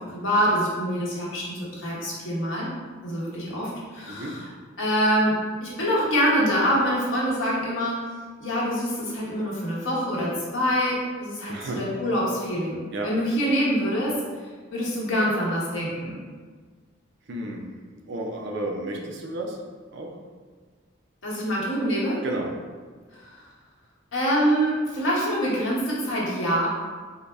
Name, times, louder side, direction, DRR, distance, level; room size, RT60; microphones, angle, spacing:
voice 1, 0.0-2.7 3.0-4.5 4.8-5.3 5.6-8.0 8.4-14.1 14.7-16.2 21.2-22.2 23.1-23.4 24.1-26.7, equal, 70° left, -6 dB, 1.0 m, -25 dB
voice 2, 4.1-4.4 11.5-11.8 12.9-13.1 17.3-17.6 18.1-19.6 19.9-20.2 22.2-22.5, right 1 dB, 60° right, 1 dB, 0.5 m, -32 dB
3.8 x 2.0 x 3.3 m, 1.5 s
head